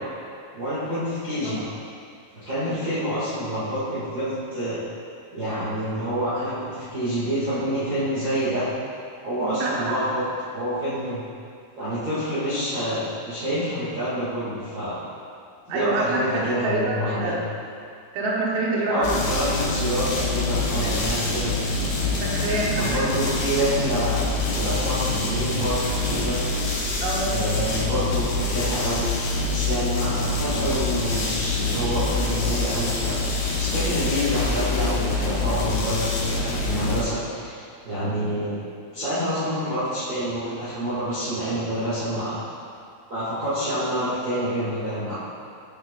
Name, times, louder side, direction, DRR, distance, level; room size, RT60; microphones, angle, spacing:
voice 1, 0.5-1.6 2.4-4.8 5.3-8.7 9.2-10.2 10.5-11.2 11.7-15.0 15.7-17.4 18.9-21.5 22.7-24.2 24.5-26.4 27.3-29.1 29.5-33.2 33.6-38.6 38.9-42.4 43.1-45.1, equal, 65° right, -13 dB, 1.1 m, -27 dB
voice 2, 1.4-1.8 9.4-10.0 15.7-17.4 18.1-19.2 19.5-19.6 20.8-21.2 22.2-23.0 27.0-27.4, right 2 dB, 85° right, -3 dB, 3.7 m, -27 dB
sound 1, 19.0-37.0, left 3 dB, 75° left, 2.3 m, -25 dB
12.5 x 6.1 x 2.4 m, 2.3 s
omnidirectional pair, 5.9 m